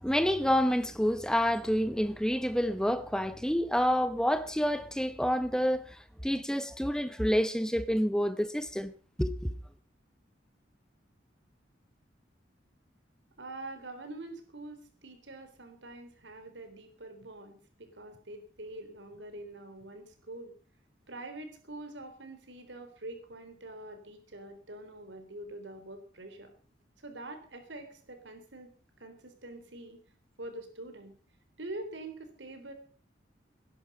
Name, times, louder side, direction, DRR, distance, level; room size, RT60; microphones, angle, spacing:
voice 1, 0.0-8.9 9.2-9.5, equal, 5° left, 1.0 m, -28 dB
voice 2, 13.4-20.5 21.1-26.5 27.0-28.7 29.0-30.0 30.4-31.1 31.6-32.7, right 2 dB, 85° right, 3.7 m, -45 dB
19.5 x 11.0 x 5.6 m
head